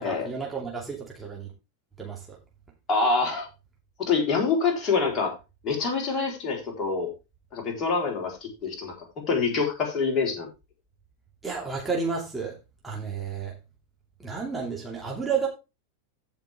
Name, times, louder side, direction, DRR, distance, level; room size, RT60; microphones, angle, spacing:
voice 1, 0.0-1.5 2.0-2.4 11.4-12.6 12.8-13.6 14.2-15.5, right 5 dB, 5° right, 2.6 m, -31 dB
voice 2, 2.9-3.5 4.0-5.4 5.6-7.1 7.5-10.5, left 4 dB, 30° left, 4.0 m, -26 dB
16.0 x 5.3 x 3.5 m
figure-of-eight pair, 90°, 0 cm